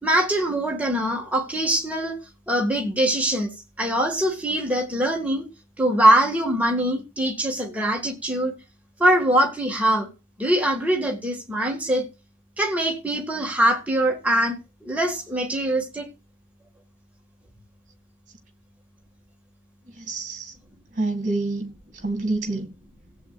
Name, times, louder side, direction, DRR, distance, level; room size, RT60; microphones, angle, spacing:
voice 1, 0.0-2.2 2.5-3.5 3.8-5.4 5.8-8.5 9.0-10.1 10.4-12.0 12.6-16.1, right 1 dB, 5° right, 1.8 m, -22 dB
voice 2, 19.9-20.5 20.9-21.7 22.0-22.7, right 2 dB, 35° right, 2.1 m, -27 dB
17.5 x 7.9 x 2.4 m
head